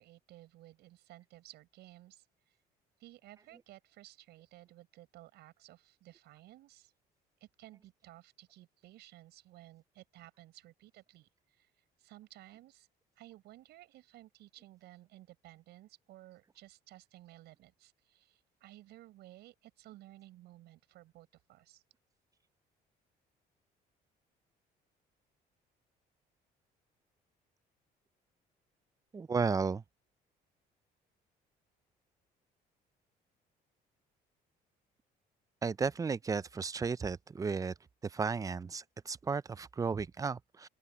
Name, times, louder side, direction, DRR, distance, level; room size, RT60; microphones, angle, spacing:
voice 1, 0.0-2.6 3.0-6.9 7.4-11.7 12.0-12.9 13.1-21.8, right 15 dB, 80° right, 6.4 m, -56 dB
voice 2, 29.1-29.8 35.6-37.7 38.0-40.7, right 5 dB, 20° right, 0.5 m, -34 dB
open air
cardioid pair, 110°, 17 cm